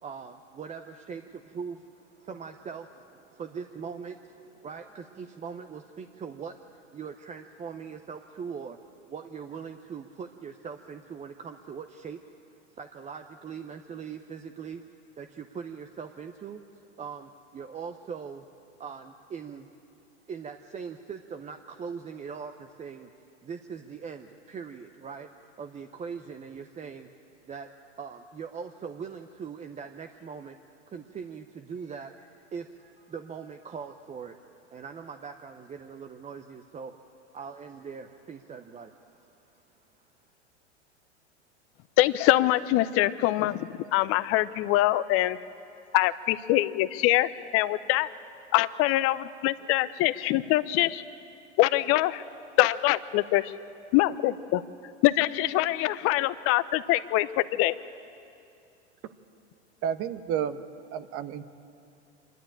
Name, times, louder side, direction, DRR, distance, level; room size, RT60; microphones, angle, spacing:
voice 1, 0.0-8.8 9.1-12.2 12.7-14.8 15.2-16.6 17.0-18.5 18.8-19.7 20.3-23.1 23.4-25.3 25.6-27.1 27.5-27.7 28.0-30.6 30.9-34.4 34.7-39.6, right 6 dB, 20° right, 6 dB, 0.7 m, -41 dB
voice 2, 42.0-45.4 45.9-48.1 48.5-51.0 51.6-52.2 52.6-53.5 53.9-54.6 55.0-57.7, left 16 dB, 40° left, 15 dB, 0.7 m, -24 dB
voice 3, 59.8-60.6 60.9-61.4, right 9 dB, 40° right, 11 dB, 1.1 m, -31 dB
26.0 x 12.0 x 8.8 m, 2.6 s
hypercardioid pair, 100°, 35 cm